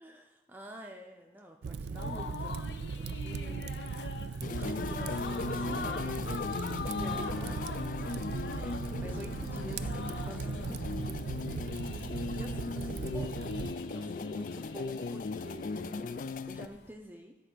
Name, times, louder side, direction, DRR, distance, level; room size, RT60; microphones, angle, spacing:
voice 1, 0.0-2.7 2.9-4.0 4.5-6.6 7.0-7.9 8.3-10.8 11.7-13.4 13.9-16.2 16.5-17.4, right 1 dB, 10° right, 2 dB, 0.6 m, -48 dB
Fire, 1.6-13.7, right 5 dB, 70° right, 0.4 m, -38 dB
sound 1, 2.0-16.9, left 4 dB, 75° left, 0.8 m, -43 dB
sound 2, 4.4-16.7, left 3 dB, 50° left, 0.3 m, -38 dB
12.5 x 4.6 x 6.2 m, 1.1 s
head